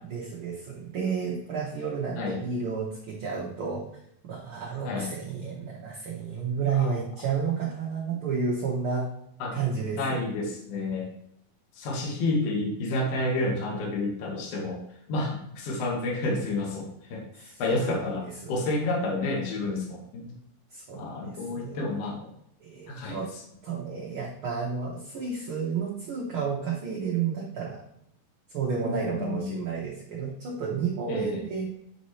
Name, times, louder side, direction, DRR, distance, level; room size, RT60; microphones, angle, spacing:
voice 1, 0.1-3.8 4.3-9.1 9.5-10.2 17.3-18.1 20.7-21.8 22.6-23.3 23.6-27.8 28.5-31.7, right 6 dB, 80° right, -3 dB, 1.1 m, -31 dB
voice 2, 10.0-11.1 11.8-14.8 15.1-20.4 21.0-22.3 22.9-23.2 28.8-29.6 31.1-31.4, left 2 dB, 60° left, 1 dB, 2.0 m, -30 dB
8.9 x 4.2 x 3.1 m, 0.73 s
omnidirectional pair, 3.8 m